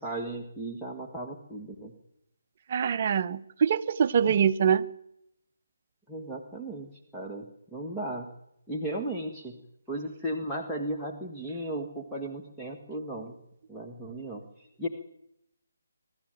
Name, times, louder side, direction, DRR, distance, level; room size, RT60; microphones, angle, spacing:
voice 1, 0.0-1.9 6.1-7.5 7.7-8.3 8.7-9.6 9.9-13.3 13.7-14.9, right 1 dB, ahead, 1.7 m, -35 dB
voice 2, 2.7-4.8, right 7 dB, 35° right, 0.9 m, -24 dB
23.0 x 13.0 x 9.1 m
figure-of-eight pair, 145°, 0 cm